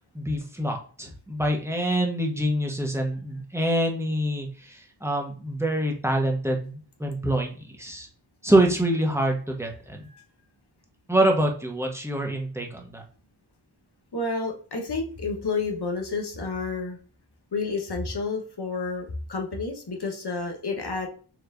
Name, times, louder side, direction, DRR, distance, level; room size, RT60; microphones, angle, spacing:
voice 1, 0.1-8.1 8.4-10.1 11.1-13.0, right 1 dB, 5° right, 1 dB, 1.1 m, -25 dB
voice 2, 14.1-17.0 17.5-21.1, left 3 dB, 60° left, 2 dB, 1.2 m, -30 dB
4.8 x 3.1 x 2.6 m, 0.41 s
wide cardioid pair, 70°, 45 cm